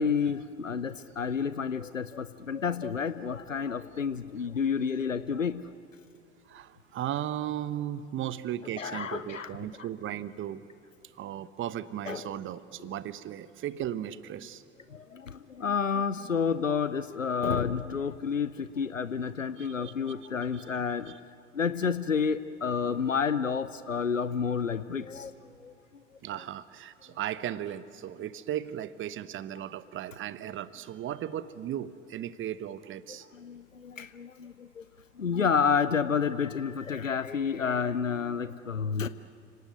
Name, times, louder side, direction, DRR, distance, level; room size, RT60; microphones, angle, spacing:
voice 1, 0.0-5.6 8.8-9.6 12.1-12.4 14.9-21.1 21.5-25.3 25.6-25.7 33.4-34.8 35.2-39.1, left 6 dB, 90° left, 14 dB, 0.6 m, -30 dB
voice 2, 6.5-10.7 11.1-14.6 19.6-19.9 20.5-20.6 21.1-21.2 26.2-33.3, right 11 dB, 30° right, 16 dB, 1.0 m, -36 dB
29.5 x 18.5 x 9.2 m, 2.5 s
figure-of-eight pair, 75°, 37 cm